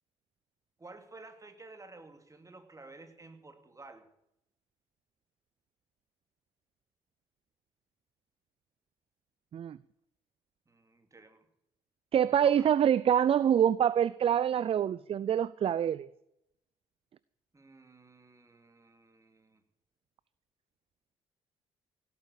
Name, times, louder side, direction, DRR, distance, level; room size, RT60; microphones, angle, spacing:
voice 1, 0.8-4.1 10.7-11.5 12.4-12.7 17.5-19.6, right 3 dB, 20° right, 2.6 m, -52 dB
voice 2, 12.1-16.1, right 9 dB, 40° right, 0.5 m, -26 dB
17.0 x 8.5 x 8.3 m
hypercardioid pair, 50°, 15 cm